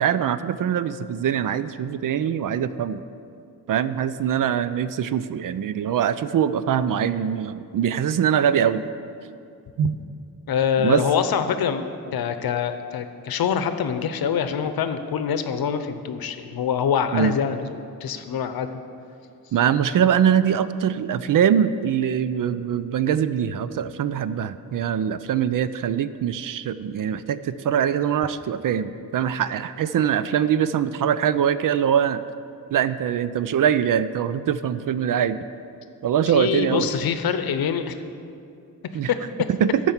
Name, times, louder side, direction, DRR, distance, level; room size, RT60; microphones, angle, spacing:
voice 1, 0.0-3.0 3.7-8.8 9.8-10.0 10.8-11.0 17.1-17.3 19.5-32.2 32.7-35.5 36.0-36.9 38.9-39.1 39.6-39.7, right 8 dB, 60° right, 14 dB, 0.5 m, -23 dB
voice 2, 10.5-18.7 36.3-38.0 39.1-39.2, left 7 dB, 70° left, 10 dB, 0.8 m, -25 dB
12.5 x 4.6 x 7.2 m, 2.5 s
cardioid pair, 80°, 37 cm